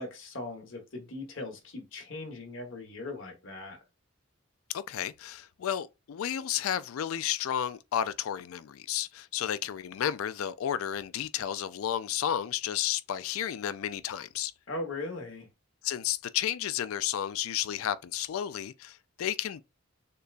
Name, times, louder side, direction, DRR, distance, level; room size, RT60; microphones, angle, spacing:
voice 1, 0.0-3.8 14.7-15.5, left 2 dB, 65° left, 1.2 m, -39 dB
voice 2, 4.7-14.5 15.8-19.6, left 10 dB, 80° left, 0.4 m, -32 dB
6.7 x 2.3 x 2.4 m
head